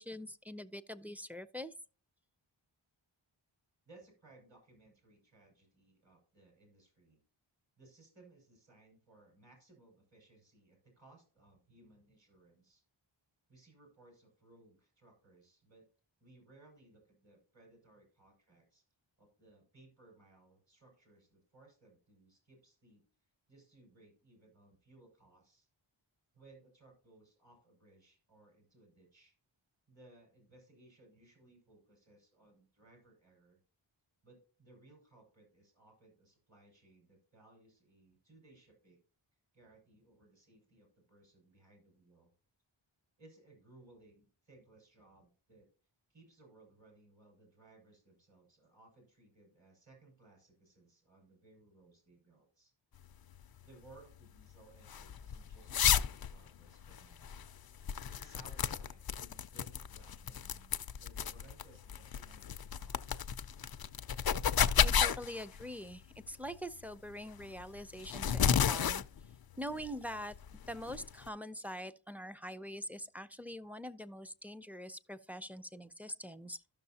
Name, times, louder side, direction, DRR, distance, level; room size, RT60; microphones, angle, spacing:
voice 1, 0.0-1.7 64.8-69.0 69.6-76.6, equal, 5° right, 0.5 m, -44 dB
voice 2, 3.8-7.2 7.8-12.8 13.5-15.9 16.2-18.8 19.2-23.0 23.5-25.7 26.3-29.3 29.9-33.6 34.2-39.0 39.5-42.3 43.2-45.7 46.1-52.7 53.6-57.3 58.0-63.2, right 2 dB, 65° right, 5.4 m, -62 dB
sound 1, 53.0-71.3, left 8 dB, 50° left, 0.5 m, -34 dB
13.0 x 6.3 x 2.8 m
wide cardioid pair, 60°, 48 cm